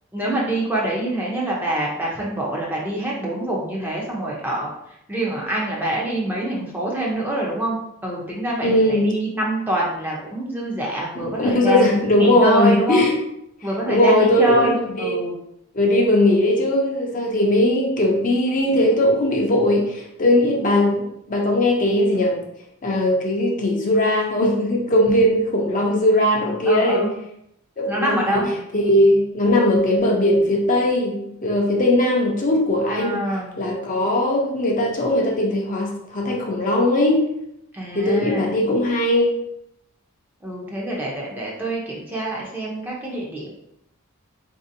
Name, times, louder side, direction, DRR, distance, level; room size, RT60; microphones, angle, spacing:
voice 1, 0.1-4.7 5.1-13.0 13.6-15.4 26.7-27.1 27.9-28.5 32.9-33.6 37.7-38.5 40.4-43.5, right 1 dB, 10° right, -4 dB, 0.6 m, -25 dB
voice 2, 8.6-9.1 11.4-13.2 13.9-14.7 15.0-15.2 15.7-22.4 22.8-27.0 27.8-33.3 33.6-37.2 37.9-39.4, left 1 dB, 35° left, -1 dB, 0.6 m, -19 dB
4.0 x 2.7 x 2.6 m, 0.78 s
head